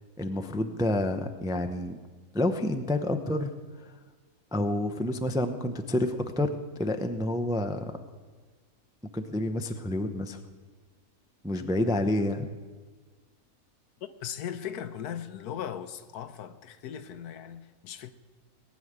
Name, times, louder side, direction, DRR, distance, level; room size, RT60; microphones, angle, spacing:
voice 1, 0.2-2.0 2.3-3.5 4.5-7.9 9.1-10.4 11.4-12.5, left 1 dB, 5° right, 0.4 m, -29 dB
voice 2, 14.0-18.1, left 9 dB, 80° left, 1.3 m, -38 dB
18.5 x 6.4 x 9.5 m
omnidirectional pair, 1.6 m